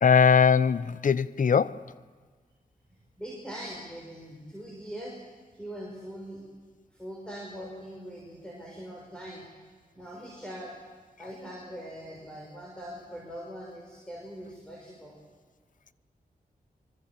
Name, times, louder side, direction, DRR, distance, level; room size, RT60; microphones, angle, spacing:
voice 1, 0.0-1.8, left 6 dB, 60° left, 0.6 m, -21 dB
voice 2, 3.2-5.2 5.5-6.4 6.9-9.5 9.9-10.8 11.2-15.2, equal, 5° left, 5.8 m, -42 dB
24.5 x 23.5 x 7.4 m
wide cardioid pair, 95°, 15 cm